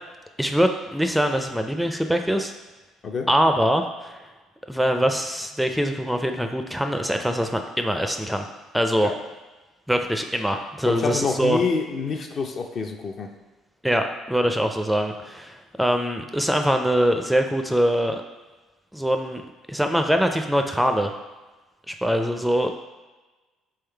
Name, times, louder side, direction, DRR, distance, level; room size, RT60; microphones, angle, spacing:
voice 1, 0.4-2.5 3.3-4.2 4.7-8.5 8.7-9.1 9.9-11.6 13.8-18.2 18.9-21.1 21.9-22.7, equal, ahead, 5 dB, 0.4 m, -23 dB
voice 2, 10.9-13.3, left 5 dB, 50° left, 4 dB, 0.5 m, -26 dB
3.6 x 3.1 x 4.5 m, 1.2 s
hypercardioid pair, 65°, 0 cm